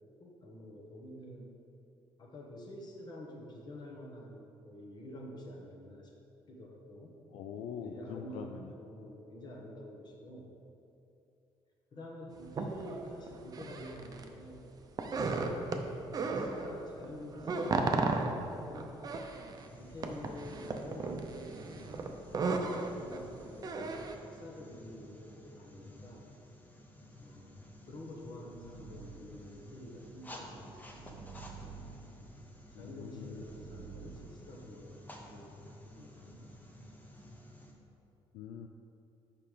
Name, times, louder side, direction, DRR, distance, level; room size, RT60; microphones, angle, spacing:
voice 1, 0.2-1.5 2.2-6.1 6.5-7.2 7.8-8.5 8.8-10.5 11.9-14.7 15.1-19.0 19.8-21.9 22.5-26.3 27.2-27.6 27.9-31.8 32.4-36.6, left 1 dB, 45° left, -1 dB, 1.3 m, -48 dB
voice 2, 7.3-8.7 32.7-33.4 38.3-38.7, left 8 dB, 75° left, 4 dB, 0.4 m, -43 dB
sound 1, 12.5-14.3 14.6-16.7 17.0-24.1, right 3 dB, 40° right, 0.6 m, -35 dB
sound 2, 19.5-37.7, left 1 dB, 15° left, 0.9 m, -53 dB
sound 3, 28.4-34.2, right 7 dB, 75° right, 0.8 m, -52 dB
5.6 x 5.0 x 5.0 m, 2.8 s
cardioid pair, 90°, 10 cm